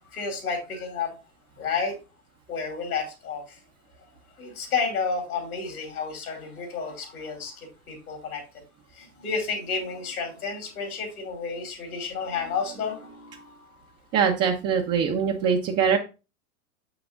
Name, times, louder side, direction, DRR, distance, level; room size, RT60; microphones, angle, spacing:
voice 1, 0.1-1.1 1.6-1.9 2.5-3.6 4.4-8.4 8.9-13.8, left 5 dB, 75° left, 4 dB, 2.6 m, -31 dB
voice 2, 14.1-16.0, right 7 dB, 35° right, 3 dB, 0.8 m, -23 dB
6.8 x 5.9 x 2.5 m, 0.30 s
hypercardioid pair, 95°, 44 cm